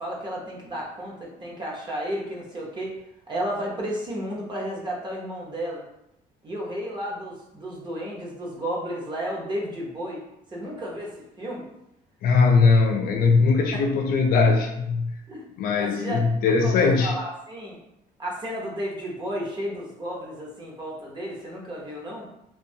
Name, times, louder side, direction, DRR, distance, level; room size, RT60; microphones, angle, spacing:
voice 1, 0.0-2.9 3.3-5.8 6.4-11.7 13.7-13.8 15.3-15.4 15.8-16.2 16.5-17.8 18.2-22.3, equal, 25° right, -3 dB, 0.8 m, -32 dB
voice 2, 12.2-15.2 15.6-17.1, left 4 dB, 60° left, 2 dB, 0.4 m, -20 dB
2.5 x 2.3 x 2.7 m, 0.83 s
cardioid pair, 110°, 17 cm